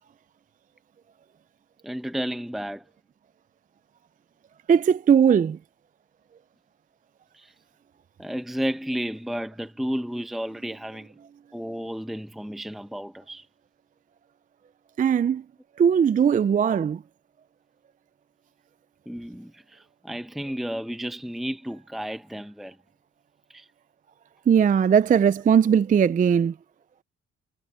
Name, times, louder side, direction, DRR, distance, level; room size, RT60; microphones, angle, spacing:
voice 1, 1.8-2.8 7.3-7.5 8.2-11.1 11.5-13.5 19.1-22.8 23.5-23.7, equal, ahead, 0.9 m, -32 dB
voice 2, 4.7-5.6 15.0-15.4 15.8-17.0 24.5-26.5, right 7 dB, 30° right, 0.4 m, -19 dB
cardioid pair, 90°, 30 cm